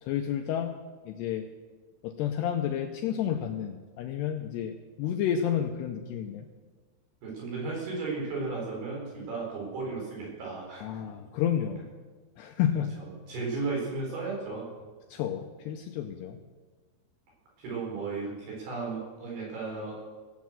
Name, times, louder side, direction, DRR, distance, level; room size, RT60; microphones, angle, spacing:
voice 1, 0.0-0.7 1.1-1.5 2.0-6.5 10.8-11.8 12.4-13.0 15.1-16.4, left 9 dB, 80° left, 4 dB, 2.5 m, -30 dB
voice 2, 7.2-10.8 13.0-14.7 17.6-20.0, right 4 dB, 55° right, -3 dB, 6.2 m, -34 dB
16.5 x 8.3 x 7.6 m, 1.4 s
omnidirectional pair, 5.4 m